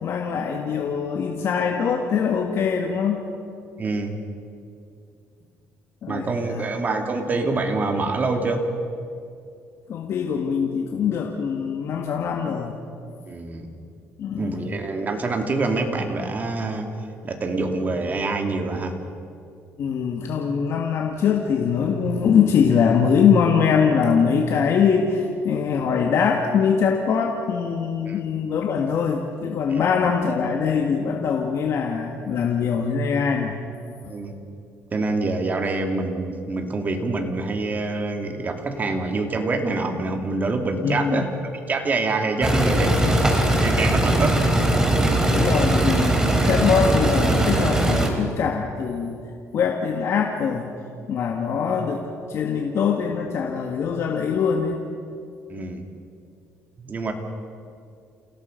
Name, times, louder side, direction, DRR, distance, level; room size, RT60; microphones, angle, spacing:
voice 1, 0.0-3.2 6.0-6.7 9.9-12.7 14.2-14.7 19.8-33.5 40.8-41.3 44.2-44.4 45.3-46.2 46.5-49.2 49.5-50.7 51.1-52.0 52.3-54.8, left 6 dB, 60° left, 1 dB, 1.9 m, -22 dB
voice 2, 3.8-4.1 6.1-8.6 13.3-13.7 14.4-16.9 17.2-18.9 28.1-28.2 29.7-29.8 34.1-34.3 34.9-41.3 41.7-42.9 43.2-44.4 45.0-45.2 55.5-55.8 56.8-57.1, right 3 dB, 35° right, 4 dB, 2.7 m, -26 dB
sound 1, 42.4-48.1, right 1 dB, 10° right, 3.4 m, -20 dB
29.0 x 17.0 x 5.4 m, 2.4 s
cardioid pair, 100°, 5 cm